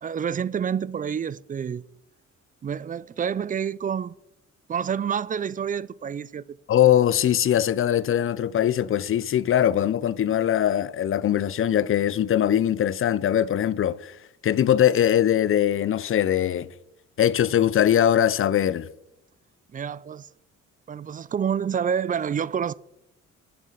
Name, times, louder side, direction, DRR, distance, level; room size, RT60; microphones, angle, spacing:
voice 1, 0.0-1.8 2.6-4.1 4.7-6.4 19.7-20.3 20.9-22.7, right 7 dB, 30° right, 0.4 m, -28 dB
voice 2, 6.7-14.2 14.4-16.7 17.2-18.9, left 10 dB, 45° left, 0.5 m, -21 dB
10.5 x 7.2 x 5.8 m
cardioid pair, 90°, 30 cm